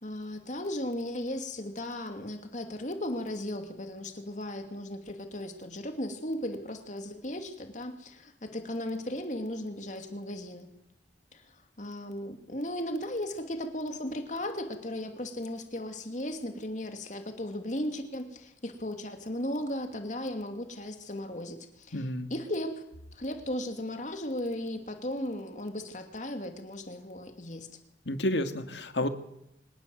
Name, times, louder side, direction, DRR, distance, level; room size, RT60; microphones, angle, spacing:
voice 1, 0.0-10.7 11.3-22.0 22.3-22.8 23.1-27.7, left 1 dB, 45° left, 6 dB, 2.6 m, -36 dB
voice 2, 21.9-22.3 28.1-29.1, left 1 dB, 85° left, 9 dB, 2.1 m, -30 dB
25.0 x 20.0 x 7.8 m, 0.81 s
head